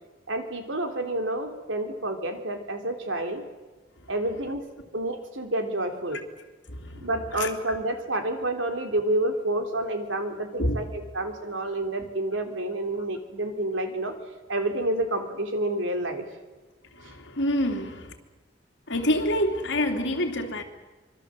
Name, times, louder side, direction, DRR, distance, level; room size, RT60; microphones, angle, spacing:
voice 1, 0.3-3.4 4.1-4.6 4.9-6.2 7.0-14.1 14.5-16.2, right 1 dB, 85° right, 3.5 m, -29 dB
voice 2, 6.7-7.8 10.6-10.8 16.9-18.1 18.9-20.6, left 1 dB, 65° left, 3.1 m, -27 dB
25.5 x 24.0 x 7.7 m
head